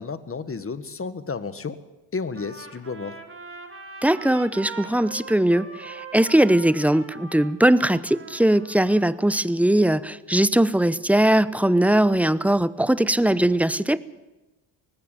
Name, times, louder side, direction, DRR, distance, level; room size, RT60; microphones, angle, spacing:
voice 1, 0.0-1.8 2.1-3.2, left 4 dB, 25° left, 13 dB, 1.7 m, -32 dB
Trumpet, 2.3-9.3, right 4 dB, 25° right, 3.7 m, -41 dB
voice 2, 4.0-14.0, right 1 dB, 5° right, 17 dB, 0.8 m, -20 dB
18.5 x 16.0 x 9.1 m, 1.1 s
supercardioid pair, 70°, 49 cm